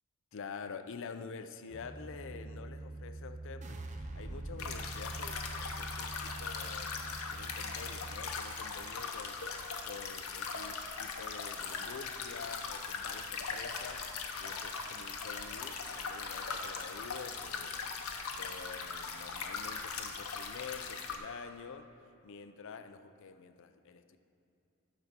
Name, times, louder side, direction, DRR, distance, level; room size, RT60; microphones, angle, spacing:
voice 1, 0.3-17.8 18.4-21.9 22.2-24.2, left 5 dB, 60° left, 9 dB, 0.5 m, -48 dB
sound 1, 1.7-8.4, right 2 dB, 20° left, 2.3 m, -45 dB
sound 2, 3.6-9.8 10.2-10.8, right 1 dB, 35° right, 0.7 m, -51 dB
sound 3, 4.6-21.2, left 5 dB, 90° left, 0.8 m, -40 dB
12.0 x 4.1 x 7.3 m, 2.8 s
head